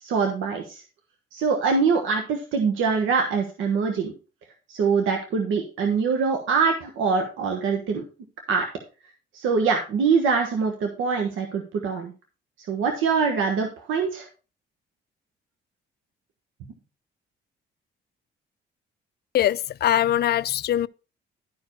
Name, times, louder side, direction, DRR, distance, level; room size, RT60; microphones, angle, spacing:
voice 1, 0.0-0.8 1.3-4.1 4.7-8.0 8.5-8.7 9.3-12.1 12.7-14.3, right 5 dB, 85° right, 1.3 m, -24 dB
voice 2, 19.3-20.9, left 12 dB, 55° left, 0.4 m, -22 dB
11.5 x 4.8 x 4.6 m
cardioid pair, 90°, 20 cm